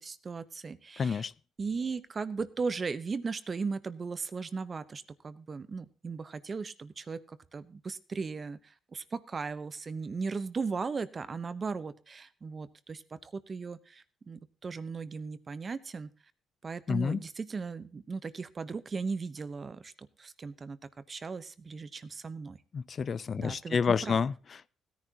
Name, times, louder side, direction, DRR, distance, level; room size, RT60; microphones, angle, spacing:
voice 1, 0.0-1.2 1.6-16.1 16.6-19.9 20.2-20.8 21.1-22.6 23.4-24.2, right 4 dB, 35° right, 0.9 m, -37 dB
voice 2, 1.0-1.3 16.9-17.2 22.7-24.7, left 6 dB, 45° left, 0.4 m, -29 dB
16.5 x 10.0 x 2.9 m
cardioid pair, 90°, 0 cm